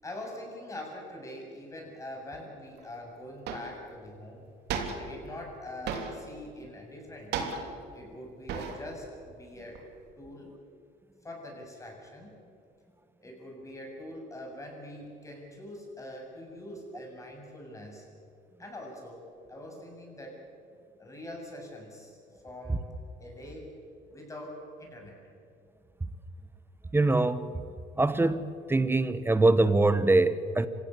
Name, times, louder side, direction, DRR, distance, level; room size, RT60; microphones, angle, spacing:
voice 1, 0.0-4.5 4.9-7.5 7.9-9.8 10.2-10.5 11.2-12.3 13.2-18.1 18.6-19.2 19.5-20.4 21.0-22.2 22.4-22.8 23.2-23.7 24.1-25.2, left 1 dB, 20° left, 0 dB, 7.5 m, -43 dB
sound 1, 2.8-2.9 3.5-3.8 4.7-5.2 5.9-6.4 7.3-7.9 8.5-9.0 9.3-10.1, right 5 dB, 80° right, 3.3 m, -35 dB
voice 2, 26.9-27.5 28.0-30.7, right 2 dB, 15° right, 13 dB, 1.1 m, -23 dB
26.0 x 16.5 x 8.4 m, 2.4 s
cardioid pair, 110°, 17 cm